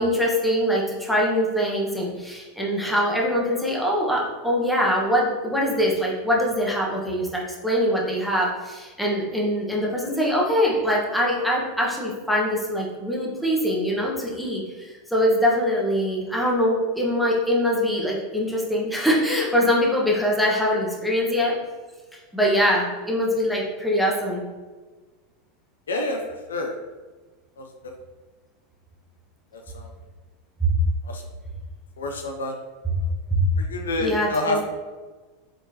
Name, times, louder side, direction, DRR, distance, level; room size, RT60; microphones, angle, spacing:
voice 1, 0.0-21.6 22.1-24.4 30.6-30.7 33.3-33.4 34.0-34.6, equal, ahead, -4 dB, 1.2 m, -23 dB
voice 2, 25.9-26.2 26.5-26.7 32.0-32.5 33.7-34.6, left 2 dB, 75° left, 3 dB, 0.5 m, -26 dB
5.1 x 3.6 x 2.8 m, 1.3 s
figure-of-eight pair, 85°, 0 cm